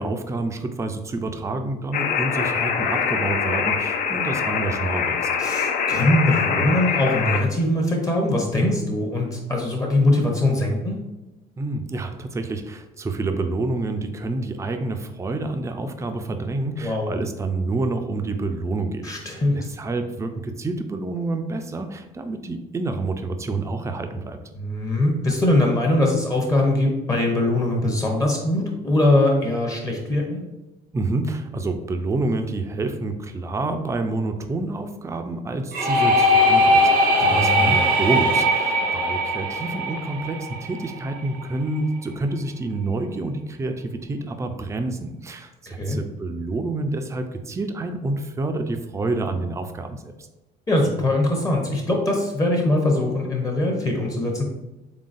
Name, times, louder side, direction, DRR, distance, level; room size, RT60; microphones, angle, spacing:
voice 1, 0.0-5.3 11.6-24.4 30.9-50.3, right 2 dB, 15° right, 6 dB, 0.4 m, -28 dB
sound 1, 1.9-7.4, left 6 dB, 55° left, 0.4 m, -24 dB
voice 2, 5.4-11.0 16.8-17.1 19.0-19.6 24.5-30.4 37.2-37.8 45.7-46.0 50.7-54.4, left 1 dB, 20° left, 0 dB, 0.8 m, -22 dB
sound 2, 35.7-41.4, equal, 90° right, 0.8 m, -20 dB
3.9 x 3.5 x 2.5 m, 1.0 s
cardioid pair, 110°, 17 cm